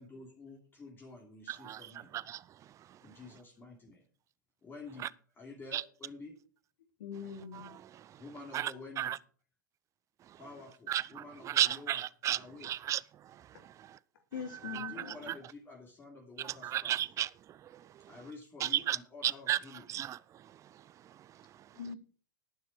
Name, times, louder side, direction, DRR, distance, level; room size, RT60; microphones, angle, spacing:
voice 1, 0.0-2.1 3.0-4.0 4.6-5.1 5.4-6.3 8.2-9.1 10.4-12.7 14.6-17.0 18.1-19.9, left 3 dB, 20° left, 3.1 m, -50 dB
voice 2, 1.5-1.8 2.1-2.4 2.9-3.0 5.7-5.8 8.1-8.2 8.5-8.7 9.0-9.2 10.3-10.4 10.9-13.5 14.7-14.9 15.3-15.4 16.4-18.1 18.6-19.0 19.2-19.6 19.9-21.5, right 12 dB, 30° right, 0.5 m, -34 dB
voice 3, 7.0-7.7 14.3-15.3 21.7-22.0, left 7 dB, 75° left, 3.0 m, -42 dB
11.5 x 9.7 x 5.0 m
hypercardioid pair, 100°, 11 cm